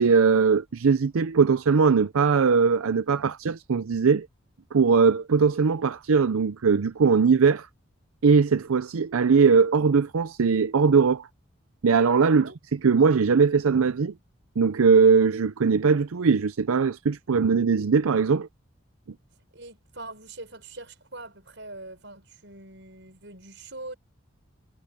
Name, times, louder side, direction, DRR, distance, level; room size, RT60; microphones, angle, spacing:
voice 1, 0.0-4.3 4.7-7.7 8.2-11.3 11.8-14.1 14.6-18.5, right 5 dB, 85° right, 0.5 m, -20 dB
voice 2, 19.5-24.0, right 2 dB, 55° right, 7.1 m, -42 dB
head